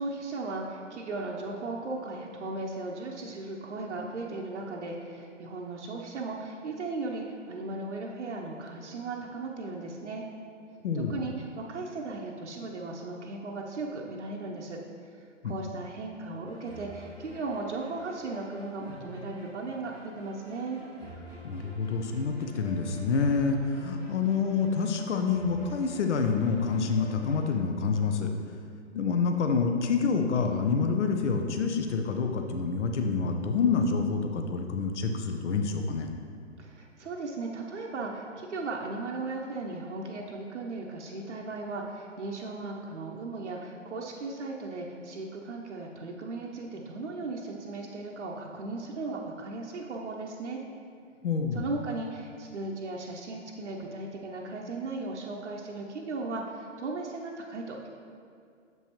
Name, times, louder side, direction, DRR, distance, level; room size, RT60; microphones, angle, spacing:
voice 1, 0.0-10.2 10.9-14.8 15.1-20.8 36.6-50.6 51.5-57.9, right 3 dB, 70° right, -1 dB, 0.8 m, -37 dB
voice 2, 10.8-11.2 15.4-15.5 21.4-28.3 28.9-36.1 51.2-51.7, left 5 dB, 70° left, 5 dB, 0.7 m, -27 dB
sound 1, 16.4-27.5, equal, ahead, 0.3 m, -48 dB
7.4 x 5.4 x 3.0 m, 2.3 s
figure-of-eight pair, 130°, 37 cm